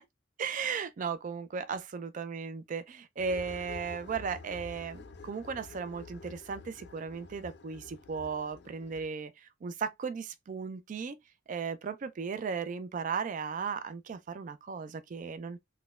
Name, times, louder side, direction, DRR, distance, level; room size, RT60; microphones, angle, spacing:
voice 1, 0.4-9.3 9.6-11.2 11.5-15.6, right 5 dB, 40° right, 0.3 m, -36 dB
sound 1, 3.2-9.1, left 4 dB, 60° left, 0.4 m, -48 dB
4.0 x 2.1 x 2.3 m
head